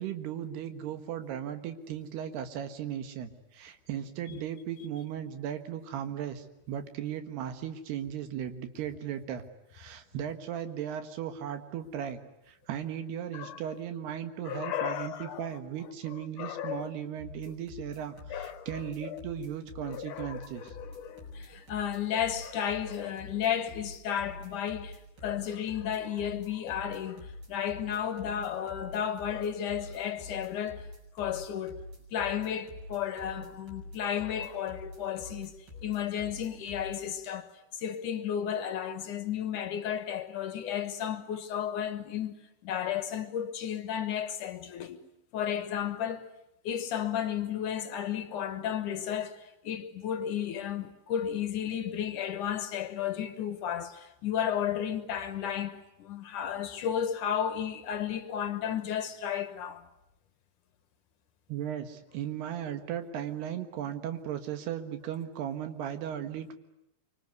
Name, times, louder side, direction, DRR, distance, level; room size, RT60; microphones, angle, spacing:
voice 1, 0.0-9.5 9.7-12.2 12.5-20.7 61.5-66.6, right 9 dB, 90° right, 3.7 m, -37 dB
voice 2, 14.4-15.6 16.1-16.9 18.3-18.7 19.0-19.2 19.9-25.0 25.2-30.9 31.2-31.8 32.1-35.5 35.8-37.5 37.8-42.4 42.6-45.0 45.3-46.3 46.7-49.4 49.6-59.8, left 9 dB, 65° left, 2.3 m, -33 dB
sound 1, 17.2-37.0, left 2 dB, 60° right, 8.2 m, -46 dB
25.0 x 25.0 x 9.5 m
omnidirectional pair, 4.5 m